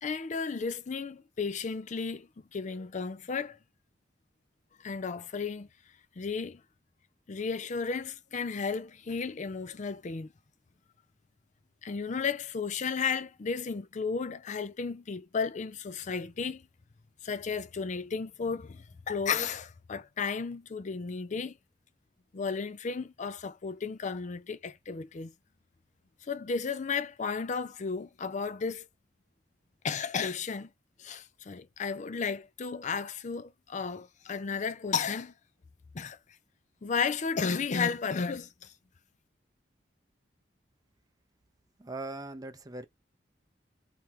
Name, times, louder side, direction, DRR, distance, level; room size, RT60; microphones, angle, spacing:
voice 1, 0.0-3.6 4.8-5.7 6.2-6.6 7.3-10.3 11.8-16.6 17.2-21.6 22.3-25.3 26.2-28.9 29.8-30.7 31.0-35.3 35.9-36.2 36.8-38.7, left 5 dB, 45° left, 0.5 m, -33 dB
voice 2, 41.8-42.8, right 2 dB, 20° right, 0.6 m, -40 dB
3.4 x 2.9 x 3.2 m
head